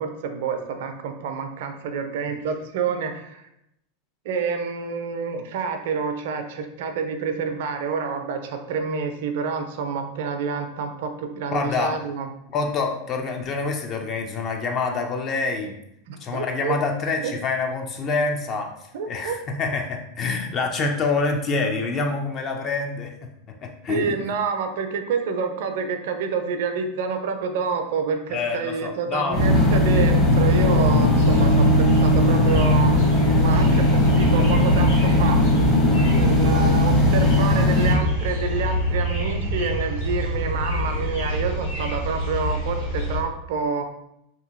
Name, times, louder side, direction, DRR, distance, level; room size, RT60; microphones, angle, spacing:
voice 1, 0.0-3.4 4.2-12.3 16.1-16.8 17.2-17.3 18.9-19.4 23.9-33.0 33.4-35.4 36.1-43.9, right 5 dB, 65° right, 6 dB, 0.3 m, -28 dB
voice 2, 11.5-12.0 12.5-15.7 16.2-18.7 19.1-23.3 23.6-24.1 28.3-29.4 33.9-34.0, left 4 dB, 40° left, 3 dB, 0.5 m, -26 dB
sound 1, 29.3-37.9, left 1 dB, 20° left, 0.9 m, -18 dB
sound 2, 31.2-43.2, right 1 dB, 80° left, 1.1 m, -27 dB
2.7 x 2.7 x 2.5 m, 0.80 s
hypercardioid pair, 90°, 0 cm